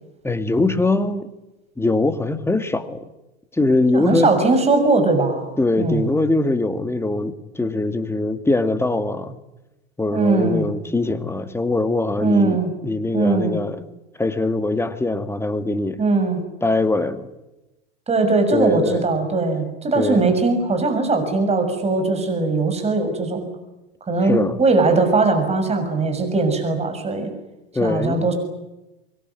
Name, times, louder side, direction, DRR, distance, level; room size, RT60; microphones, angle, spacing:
voice 1, 0.2-1.3 1.8-3.0 3.6-4.3 5.6-9.4 10.0-13.8 14.2-16.0 16.6-17.3 18.5-19.0 20.0-20.2 24.2-24.6 27.7-28.2, left 2 dB, 10° left, 10 dB, 2.2 m, -22 dB
voice 2, 3.9-5.4 5.8-6.1 10.1-10.7 12.2-12.7 13.1-13.6 16.0-16.4 18.1-23.5 24.1-27.3 27.8-28.3, right 3 dB, 20° right, 6 dB, 6.8 m, -20 dB
25.0 x 22.0 x 9.6 m, 0.98 s
hypercardioid pair, 90°, 32 cm